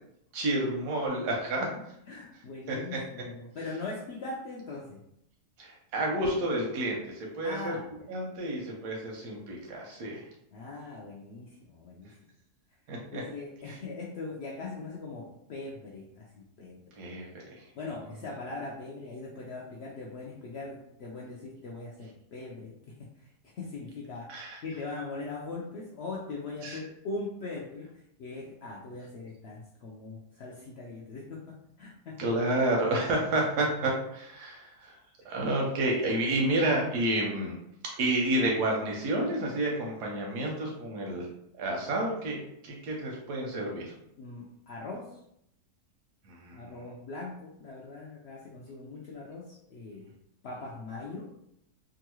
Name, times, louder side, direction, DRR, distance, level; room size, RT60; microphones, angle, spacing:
voice 1, 0.3-1.7 2.7-3.0 5.6-7.8 8.1-10.3 12.9-13.2 13.7-13.8 17.0-17.7 24.3-24.6 26.6-26.8 32.2-35.0 35.2-37.6 38.0-41.3 41.6-43.9 46.2-46.8, right 1 dB, 90° right, -1 dB, 1.2 m, -30 dB
voice 2, 2.1-5.0 7.4-8.1 10.5-12.1 13.1-16.8 17.8-22.7 23.2-27.9 28.2-32.2 44.2-45.2 46.5-50.1 50.4-51.3, left 3 dB, 80° left, -2 dB, 0.5 m, -41 dB
3.0 x 2.3 x 3.0 m, 0.77 s
omnidirectional pair, 1.6 m